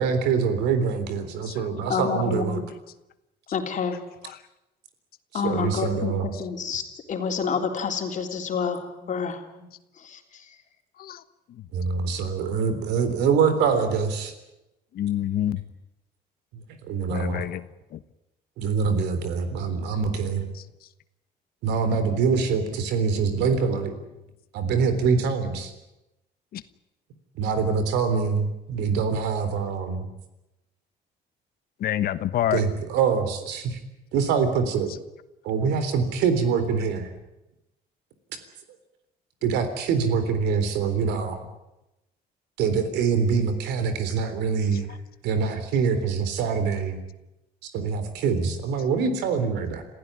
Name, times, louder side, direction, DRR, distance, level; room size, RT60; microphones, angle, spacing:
voice 1, 0.0-2.6 5.4-6.3 11.7-14.3 16.5-17.5 18.6-20.5 21.6-23.9 24.5-25.7 27.4-30.1 32.5-33.8 34.1-34.9 35.4-37.1 39.4-41.4 42.6-45.0 45.2-47.0 47.6-49.8, right 5 dB, 85° right, 10 dB, 3.7 m, -24 dB
voice 2, 1.9-2.7 3.5-4.0 5.3-6.8 7.1-9.4 10.0-10.6, left 6 dB, 45° left, 4 dB, 3.7 m, -28 dB
voice 3, 14.9-15.6 17.1-17.6 17.9-18.0 26.5-26.6 31.8-32.6, left 11 dB, 65° left, 14 dB, 1.2 m, -27 dB
27.5 x 15.5 x 9.8 m, 0.96 s
cardioid pair, 110°, 17 cm